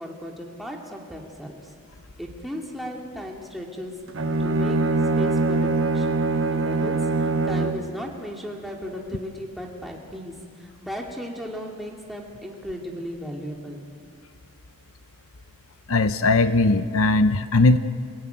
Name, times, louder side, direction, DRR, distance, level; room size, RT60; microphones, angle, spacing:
voice 1, 0.0-1.6 2.2-4.0 4.4-4.8 5.2-13.9, equal, ahead, -1 dB, 2.6 m, -36 dB
Bowed string instrument, 4.1-7.9, right 3 dB, 60° right, 1.2 m, -23 dB
voice 2, 15.9-17.8, left 3 dB, 70° left, 11 dB, 0.8 m, -19 dB
28.0 x 16.5 x 9.3 m, 2.3 s
head